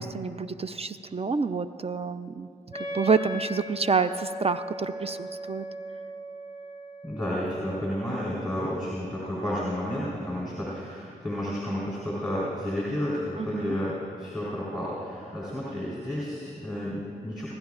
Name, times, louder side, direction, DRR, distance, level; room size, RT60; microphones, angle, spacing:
voice 1, 0.0-2.5 2.7-5.7 13.4-13.8, right 5 dB, 35° right, 11 dB, 0.4 m, -28 dB
Wind instrument woodwind instrument, 2.7-8.3, equal, 20° right, 2.7 m, -38 dB
voice 2, 7.0-17.5, equal, ahead, -7 dB, 3.5 m, -31 dB
25.0 x 10.5 x 2.4 m, 2.4 s
supercardioid pair, 45°, 18 cm